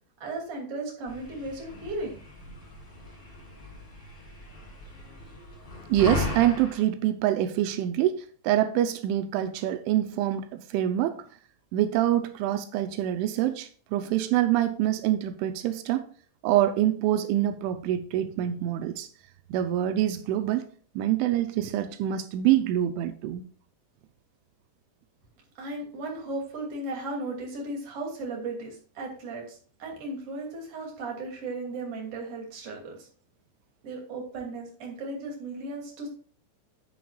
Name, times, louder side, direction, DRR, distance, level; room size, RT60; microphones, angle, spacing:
voice 1, 0.2-2.2 25.6-33.1 33.8-36.1, right 2 dB, 35° right, 0 dB, 3.0 m, -36 dB
sound 1, 1.1-6.8, left 2 dB, 20° left, 5.1 m, -37 dB
voice 2, 5.9-8.2 8.4-11.2 11.7-16.1 16.4-19.1 19.5-20.7 21.0-23.4, right 12 dB, 85° right, 8 dB, 3.1 m, -25 dB
11.0 x 8.6 x 2.4 m, 0.43 s
omnidirectional pair, 5.4 m